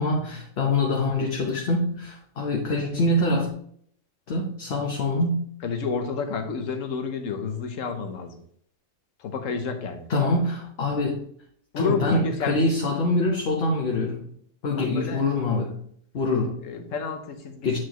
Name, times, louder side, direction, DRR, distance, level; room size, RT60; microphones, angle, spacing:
voice 1, 0.0-3.5 4.3-5.4 10.1-11.2 11.8-14.3 14.6-15.8 16.1-16.5 17.6-17.8, left 2 dB, 55° left, 0 dB, 1.2 m, -24 dB
voice 2, 5.6-8.4 9.2-10.1 11.7-12.6 14.8-15.3 16.6-17.8, left 5 dB, 85° left, 7 dB, 1.2 m, -30 dB
8.1 x 4.7 x 3.0 m, 0.64 s
omnidirectional pair, 1.3 m